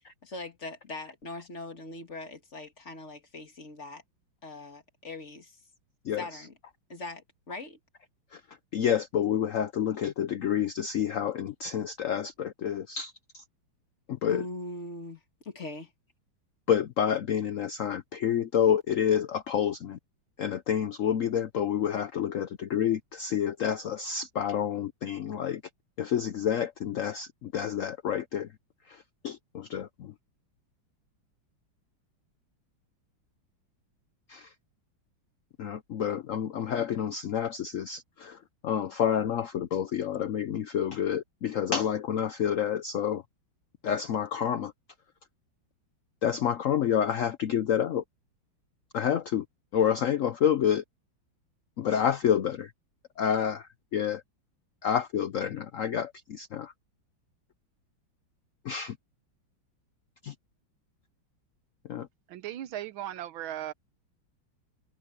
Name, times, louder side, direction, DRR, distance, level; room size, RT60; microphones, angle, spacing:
voice 1, 0.2-4.0 4.4-5.6 6.2-6.5 6.9-7.8 14.3-15.9, left 2 dB, 35° left, 2.2 m, -41 dB
voice 2, 6.0-6.4 8.3-8.4 8.7-13.4 14.1-14.4 16.7-20.0 20.4-25.6 26.0-28.5 28.9-30.1 34.3-34.5 35.6-43.2 43.8-44.7 46.2-48.0 48.9-49.4 49.7-50.8 51.8-52.7 53.2-54.2 54.8-56.7 58.6-59.0 60.2-60.3 61.9-62.1, left 9 dB, 75° left, 0.7 m, -29 dB
voice 3, 62.3-63.7, right 12 dB, 80° right, 1.5 m, -37 dB
omnidirectional pair, 2.2 m